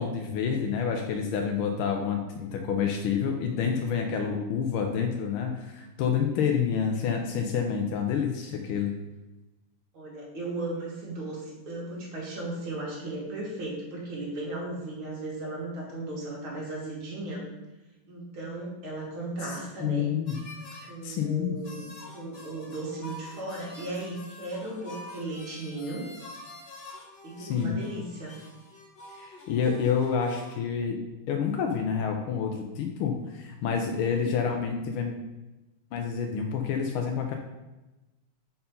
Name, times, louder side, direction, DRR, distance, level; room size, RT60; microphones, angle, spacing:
voice 1, 0.0-8.9 19.4-20.4 21.0-21.6 27.4-27.8 29.1-31.0 31.3-35.2 35.9-37.3, left 7 dB, 85° left, 2 dB, 1.5 m, -28 dB
voice 2, 9.9-17.4 18.1-20.1 20.9-26.1 27.2-28.3, right 2 dB, 75° right, -4 dB, 2.7 m, -36 dB
sound 1, 20.3-20.9 21.6-30.5, left 1 dB, 40° left, 1.0 m, -47 dB
5.6 x 4.5 x 5.2 m, 1.0 s
omnidirectional pair, 2.3 m